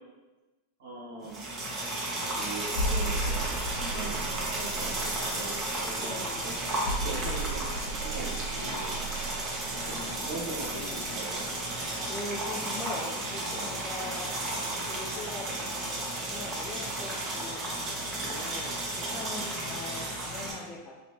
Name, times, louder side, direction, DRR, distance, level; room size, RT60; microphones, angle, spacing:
voice 1, 0.8-1.4 2.3-3.5 3.8-6.1 6.4-8.9 9.7-11.5, right 2 dB, 90° right, -5 dB, 1.5 m, -40 dB
sound 1, 1.2-20.5, right 1 dB, 30° right, 0.9 m, -33 dB
sound 2, 2.7-11.1 11.4-11.6, right 2 dB, 70° left, 0.7 m, -35 dB
voice 2, 6.0-6.6 9.7-10.0 12.0-14.3 14.8-20.9, left 2 dB, 20° left, -3 dB, 0.4 m, -42 dB
3.3 x 2.9 x 2.8 m, 1.1 s
hypercardioid pair, 120°, 0 cm